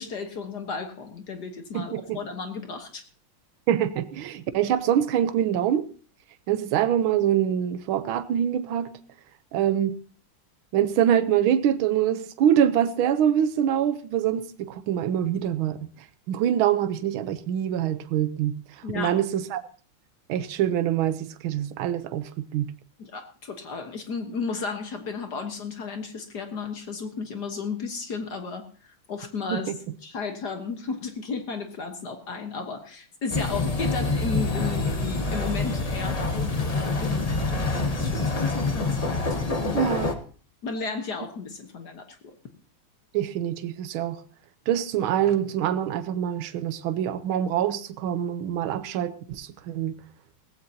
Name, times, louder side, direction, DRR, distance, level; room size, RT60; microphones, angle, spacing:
voice 1, 0.0-3.0 18.8-19.2 23.0-29.7 30.0-39.9 40.6-42.3, left 5 dB, 55° left, 1.7 m, -34 dB
voice 2, 1.7-2.2 3.7-5.8 6.5-8.9 9.5-9.9 10.7-15.9 16.3-18.6 18.9-19.6 20.3-22.7 29.5-29.6 39.7-40.1 43.1-44.2 44.7-50.0, right 10 dB, 75° right, 1.6 m, -25 dB
sound 1, 33.3-40.1, left 3 dB, 25° left, 0.8 m, -26 dB
18.0 x 15.5 x 2.8 m
omnidirectional pair, 2.3 m